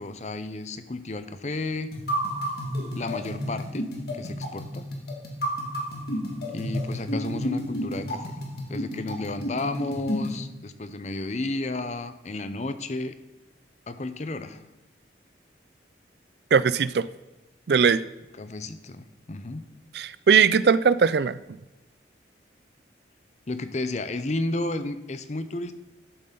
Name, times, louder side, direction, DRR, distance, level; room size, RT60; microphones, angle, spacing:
voice 1, 0.0-1.9 2.9-4.9 6.5-8.3 8.7-13.1 13.9-14.6 18.4-19.7 23.5-25.7, left 2 dB, 40° left, 11 dB, 0.6 m, -32 dB
sound 1, 1.9-10.4, equal, 55° left, 1.8 m, -31 dB
voice 2, 16.5-17.1 17.7-18.0 19.9-21.4, right 6 dB, 60° right, 16 dB, 0.4 m, -19 dB
12.5 x 7.6 x 3.9 m, 1.0 s
head